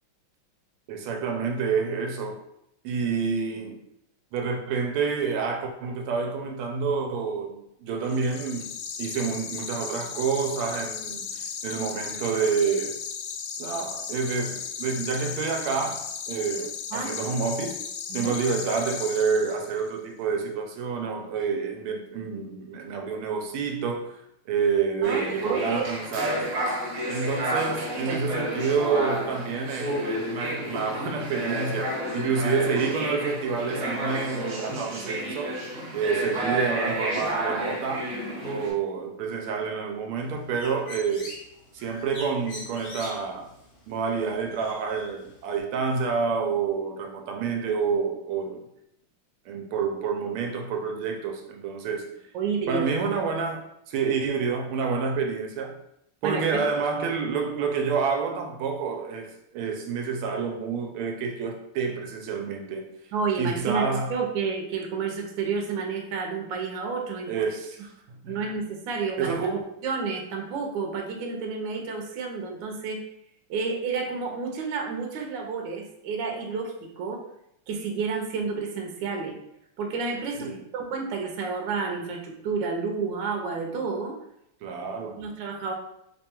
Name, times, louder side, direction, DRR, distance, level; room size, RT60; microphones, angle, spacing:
voice 1, 0.9-2.4 2.8-3.8 4.3-8.7 9.0-13.0 13.6-17.8 18.1-24.2 24.5-26.5 27.0-35.6 35.9-38.1 38.4-41.4 41.7-43.5 43.9-48.6 49.5-52.2 52.7-55.8 56.2-63.0 63.4-64.1 67.3-68.4 69.2-69.6 80.4-80.6 84.6-85.2, right 5 dB, 85° right, 1.5 m, -28 dB
sound 1, 8.1-19.9, left 6 dB, 75° left, 1.0 m, -36 dB
sound 2, 25.0-38.7, right 1 dB, 50° right, 1.3 m, -31 dB
voice 2, 25.0-25.9 28.1-28.2 36.3-36.5 52.3-53.1 56.2-56.6 63.1-67.4 68.3-73.1 73.5-77.2 77.7-79.4 79.8-84.2 85.2-85.7, right 5 dB, 70° right, 1.3 m, -30 dB
Bird, 40.2-45.6, left 1 dB, 50° left, 0.8 m, -44 dB
3.6 x 2.2 x 4.3 m
omnidirectional pair, 2.3 m